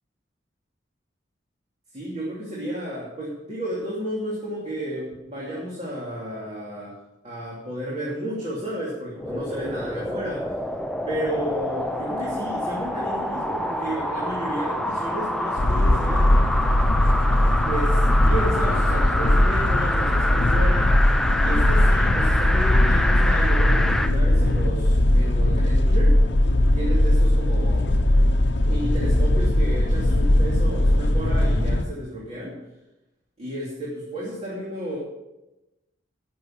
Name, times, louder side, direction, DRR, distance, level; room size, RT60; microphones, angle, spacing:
voice 1, 1.9-10.6 11.1-16.4 17.6-21.1 21.3-26.2 26.7-28.0 28.6-32.6 33.4-35.0, right 1 dB, 35° right, -6 dB, 2.9 m, -32 dB
sound 1, 9.2-24.1 24.6-24.7, left 1 dB, ahead, 0.6 m, -27 dB
sound 2, 15.6-31.8, left 1 dB, 65° left, 0.9 m, -19 dB
13.0 x 6.7 x 7.4 m, 0.99 s
head